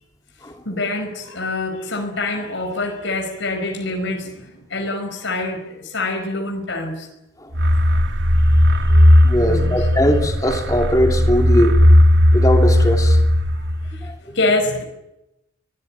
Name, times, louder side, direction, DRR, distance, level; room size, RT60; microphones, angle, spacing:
voice 1, 0.7-7.1 8.5-9.9 10.5-10.6 13.9-14.8, left 2 dB, 90° left, 5.2 m, -26 dB
sound 1, 7.5-14.1, left 1 dB, 85° right, 2.1 m, -15 dB
voice 2, 9.2-11.8 12.3-13.2 14.0-14.1, equal, 20° left, 2.9 m, -20 dB
25.5 x 20.0 x 8.9 m
head